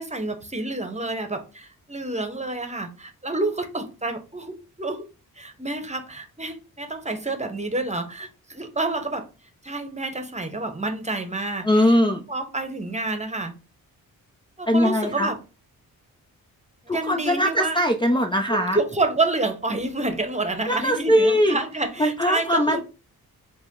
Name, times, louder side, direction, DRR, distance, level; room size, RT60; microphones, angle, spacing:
voice 1, 0.0-5.0 5.4-9.3 9.6-12.0 12.3-13.5 14.6-15.4 16.8-17.8 18.5-22.8, right 2 dB, 20° right, 1.0 m, -28 dB
voice 2, 11.6-12.2 14.7-15.3 16.9-18.8 20.7-21.6 22.0-22.8, equal, 15° left, 0.5 m, -20 dB
4.8 x 2.1 x 3.7 m
cardioid pair, 50°, 38 cm